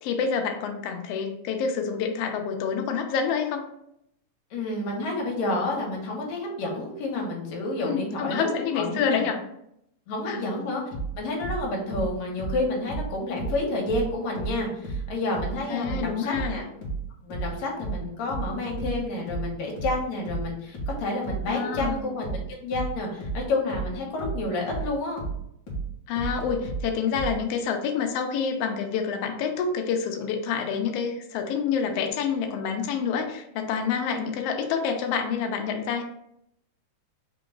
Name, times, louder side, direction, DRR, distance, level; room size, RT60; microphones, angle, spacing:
voice 1, 0.0-3.6 7.8-9.4 10.3-10.4 15.7-16.6 21.5-22.0 26.1-36.0, left 6 dB, 85° left, 4 dB, 1.3 m, -27 dB
voice 2, 4.5-8.5 8.7-9.2 10.1-10.8 11.2-16.6 17.2-25.2 34.1-34.3, left 2 dB, 70° left, 0 dB, 2.2 m, -30 dB
sound 1, 10.9-14.1 14.3-27.4, right 4 dB, 55° left, 1.3 m, -32 dB
4.9 x 2.9 x 3.7 m, 0.77 s
omnidirectional pair, 3.5 m